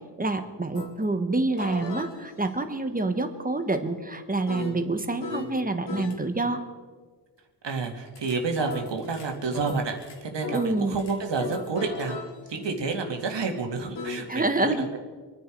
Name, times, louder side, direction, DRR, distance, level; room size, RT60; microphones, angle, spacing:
voice 1, 0.2-6.6 10.5-11.0 14.3-14.9, right 2 dB, 20° right, 8 dB, 1.3 m, -27 dB
sound 1, 0.7-0.9 1.6-5.6 5.9-6.2 7.8-14.2, left 3 dB, 80° left, 2.4 m, -38 dB
voice 2, 7.6-12.2 12.5-15.0, right 4 dB, 80° right, 3 dB, 2.3 m, -30 dB
26.0 x 10.0 x 4.6 m, 1.5 s
wide cardioid pair, 130°, 42 cm